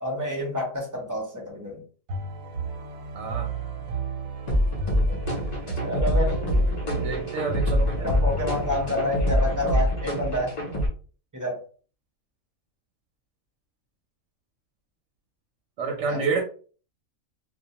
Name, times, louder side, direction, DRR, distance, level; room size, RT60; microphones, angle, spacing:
voice 1, 0.0-1.8 5.8-6.4 8.0-10.6 11.3-11.6 16.1-16.4, left 1 dB, 25° right, -2 dB, 0.5 m, -28 dB
sound 1, 2.1-9.3, right 2 dB, 90° right, 1.0 m, -34 dB
voice 2, 3.1-3.5 6.9-8.0 15.8-16.4, right 4 dB, 70° right, 2 dB, 0.8 m, -28 dB
sound 2, 4.5-10.9, equal, 40° left, 0.6 m, -25 dB
2.3 x 2.2 x 2.8 m, 0.40 s
omnidirectional pair, 1.4 m